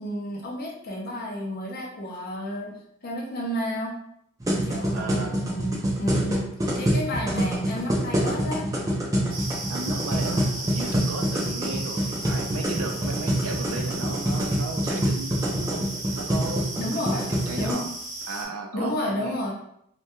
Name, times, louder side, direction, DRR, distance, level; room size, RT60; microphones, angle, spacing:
voice 1, 0.0-4.0 4.6-6.4 6.7-8.7 16.8-17.9 18.7-19.5, left 1 dB, 45° left, -1 dB, 0.5 m, -31 dB
sound 1, 4.4-17.7, equal, 15° right, 0.4 m, -26 dB
voice 2, 4.9-5.4 9.7-15.9 16.1-16.6 17.0-17.9 18.3-19.5, right 3 dB, 80° right, 3 dB, 0.4 m, -35 dB
sound 2, 9.3-18.4, right 2 dB, 60° right, 0.8 m, -36 dB
2.2 x 2.1 x 2.9 m, 0.72 s
head